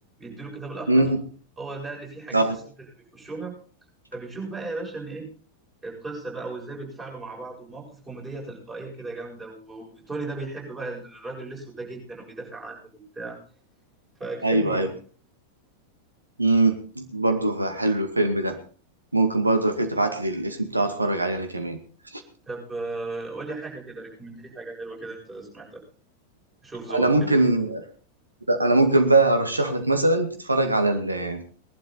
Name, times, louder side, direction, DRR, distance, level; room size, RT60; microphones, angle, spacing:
voice 1, 0.2-1.1 1.6-2.4 3.1-3.5 4.1-5.3 5.8-13.4 14.2-14.9 22.5-25.8 26.6-27.3, right 3 dB, 20° right, -2 dB, 7.4 m, -36 dB
voice 2, 0.9-1.2 2.3-2.6 14.4-14.9 16.4-18.6 19.1-21.8 22.1-22.2 26.9-27.9 28.5-31.4, right 2 dB, 80° right, 6 dB, 2.0 m, -22 dB
19.5 x 11.5 x 4.1 m, 0.40 s
figure-of-eight pair, 90°, 0 cm